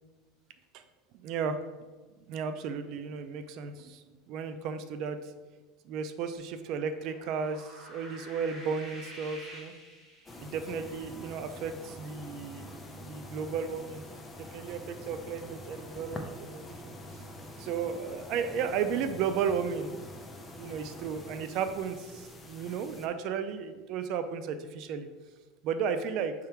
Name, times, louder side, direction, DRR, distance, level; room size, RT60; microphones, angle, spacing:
voice 1, 1.2-1.6 2.3-5.2 5.9-9.7 10.4-12.7 13.0-14.0 14.4-16.9 17.6-20.0 20.6-25.1 25.6-26.3, right 6 dB, 50° right, 9 dB, 0.4 m, -34 dB
sound 1, 6.9-10.7, equal, 5° right, 1.6 m, -48 dB
sound 2, 10.3-23.1, left 1 dB, 15° left, 0.6 m, -45 dB
6.7 x 3.6 x 4.4 m, 1.3 s
supercardioid pair, 150°, 0 cm